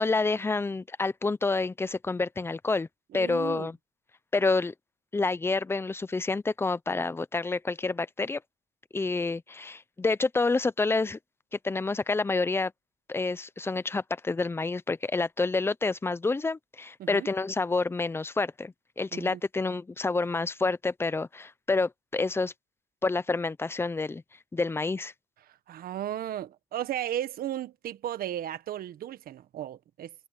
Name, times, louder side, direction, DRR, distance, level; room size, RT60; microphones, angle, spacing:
voice 1, 0.0-2.9 3.1-3.8 4.3-4.7 5.1-8.4 8.9-11.2 11.6-12.7 13.1-22.5 23.0-24.2 24.5-25.1, left 3 dB, 15° left, 0.7 m, -28 dB
voice 2, 3.1-3.7 17.0-17.3 19.1-19.4 25.7-30.1, right 11 dB, 60° right, 1.4 m, -35 dB
cardioid pair, 110°, 17 cm